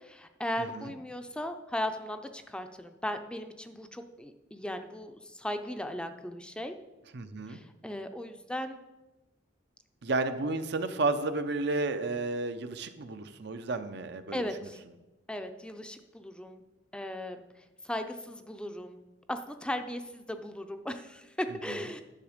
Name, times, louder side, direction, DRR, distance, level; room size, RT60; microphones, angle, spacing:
voice 1, 0.0-6.8 7.5-8.8 14.3-14.8 15.3-16.6 16.9-17.4 17.8-19.0 19.3-22.0, left 1 dB, 5° left, 7 dB, 0.5 m, -37 dB
voice 2, 7.1-7.6 10.0-14.4 21.7-21.8, right 3 dB, 65° right, 9 dB, 0.7 m, -32 dB
10.0 x 7.0 x 5.1 m, 1.1 s
head